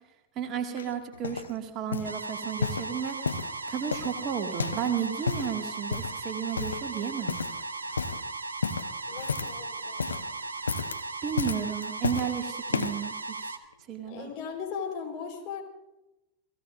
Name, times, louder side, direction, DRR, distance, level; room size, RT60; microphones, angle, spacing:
voice 1, 0.4-3.2 3.7-7.4 11.2-13.5 13.9-14.3, right 8 dB, 35° right, 4 dB, 1.9 m, -33 dB
sound 1, 0.8-1.5 1.9-2.2 2.6-3.5 3.9-4.9 5.1-5.5 5.9-6.2 6.6-7.0 7.3-7.6 7.9-8.2 8.6-9.6 9.9-10.3 10.6-11.0 11.4-12.3 12.7-13.1 13.7-13.8, left 5 dB, 75° left, 0.9 m, -32 dB
sound 2, 2.0-13.6, right 3 dB, 75° right, 1.3 m, -37 dB
voice 2, 9.1-10.4 14.1-15.6, left 6 dB, 40° left, 2 dB, 4.3 m, -38 dB
29.5 x 18.0 x 2.6 m, 0.95 s
figure-of-eight pair, 90°, 0 cm